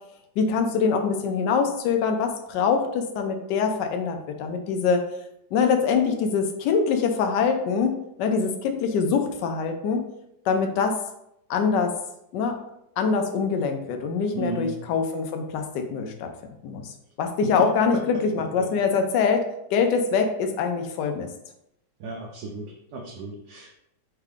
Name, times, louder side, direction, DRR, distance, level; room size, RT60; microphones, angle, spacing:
voice 1, 0.4-5.0 5.5-10.1 10.5-11.0 11.5-11.9 12.3-12.6 13.0-16.3 16.6-21.3, left 5 dB, 70° left, 5 dB, 1.1 m, -24 dB
voice 2, 14.3-14.7 22.0-23.7, right 3 dB, 70° right, -1 dB, 1.0 m, -34 dB
3.7 x 3.5 x 3.5 m, 0.80 s
omnidirectional pair, 2.2 m